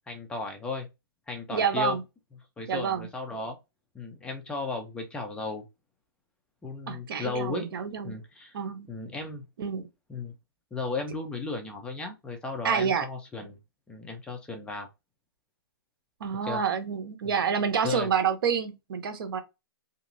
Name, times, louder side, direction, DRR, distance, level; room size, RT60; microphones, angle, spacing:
voice 1, 0.1-0.9 1.3-2.0 2.6-3.6 3.9-5.7 6.6-7.7 8.0-8.6 8.9-9.5 10.1-10.3 10.7-13.6 13.9-14.9 16.5-16.6 17.2-17.4 17.8-18.1, left 3 dB, 10° left, 0.5 m, -35 dB
voice 2, 1.5-2.0 2.7-3.1 6.9-8.2 8.5-8.9 9.6-9.8 12.6-13.0 16.2-19.4, right 7 dB, 65° right, 0.8 m, -28 dB
2.9 x 2.6 x 2.5 m
hypercardioid pair, 145°, 13 cm